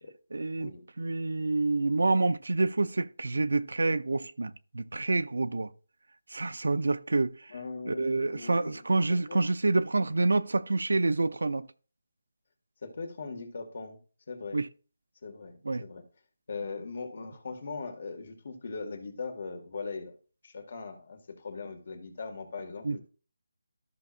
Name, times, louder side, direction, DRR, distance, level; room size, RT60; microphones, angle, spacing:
voice 1, 0.3-0.7 1.0-5.7 6.3-7.4 7.9-11.7 14.5-14.7 15.6-15.8 22.8-23.0, right 3 dB, 80° right, 0.6 m, -27 dB
voice 2, 7.5-8.8 9.1-9.4 12.8-14.0 14.3-14.6 15.2-16.0 16.5-20.1 20.4-23.0, left 4 dB, 45° left, 1.9 m, -40 dB
13.5 x 5.9 x 2.5 m
figure-of-eight pair, 170°, 0 cm